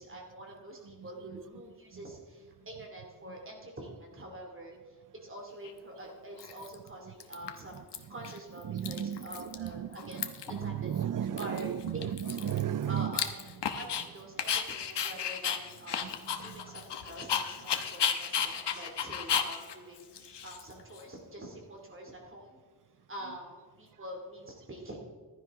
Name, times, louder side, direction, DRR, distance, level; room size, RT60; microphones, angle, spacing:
voice 1, 0.0-5.0 5.2-7.8 8.1-10.2 10.6-10.9 11.1-12.0 12.9-13.3 13.7-22.6 23.1-25.0, right 1 dB, 30° right, 2.6 m, -46 dB
voice 2, 0.8-1.4 3.3-3.4 7.1-7.2 7.4-13.2 13.4-13.6 14.0-14.1 16.0-16.8 23.2-23.4, right 10 dB, 50° right, 0.5 m, -36 dB
Dog, 5.6-5.7 6.4-6.9 7.2-8.0 8.2-8.4 8.6-9.7 9.9-10.6 10.9-11.0 11.4-14.0 14.4-21.0, left 8 dB, 85° left, 1.1 m, -34 dB
15.0 x 12.0 x 3.6 m
wide cardioid pair, 165°, 40 cm